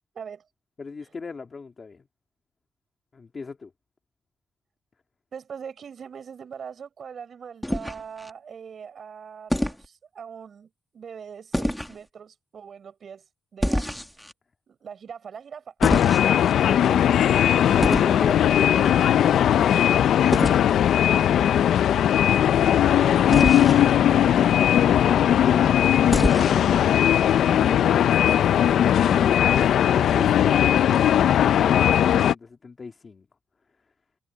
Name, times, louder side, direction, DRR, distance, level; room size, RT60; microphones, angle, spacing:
voice 1, 0.1-0.5 1.0-1.1 5.3-14.2 14.7-15.7 16.7-16.9 18.6-19.2 23.3-23.7, right 7 dB, 50° right, 6.1 m, -41 dB
voice 2, 0.8-2.0 3.1-3.7 16.5-20.5 24.2-26.8 27.2-33.3, left 4 dB, 30° left, 2.2 m, -37 dB
sound 1, 7.6-8.3 9.5-9.8 11.5-12.0 13.6-14.3 15.8-16.5 17.8-18.2 20.3-20.6 23.3-23.8 26.1-26.7, equal, 5° left, 1.7 m, -26 dB
sound 2, 15.8-32.3, left 10 dB, 80° left, 0.4 m, -19 dB
wide cardioid pair, 165°, 0 cm